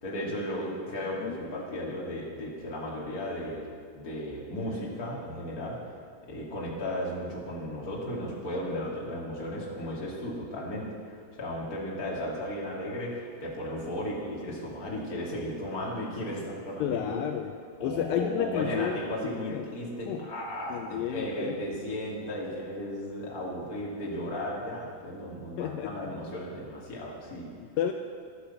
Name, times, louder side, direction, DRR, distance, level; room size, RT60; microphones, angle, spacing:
voice 1, 0.0-3.6 3.9-5.8 6.3-17.2 17.8-27.5, left 1 dB, 25° left, -4 dB, 2.5 m, -35 dB
voice 2, 16.8-17.5 17.8-19.0 19.2-19.7 20.1-20.2 20.7-21.6 25.6-26.1 27.6-27.9, left 10 dB, 85° left, 5 dB, 2.1 m, -32 dB
11.5 x 11.0 x 7.1 m, 2.1 s
omnidirectional pair, 4.6 m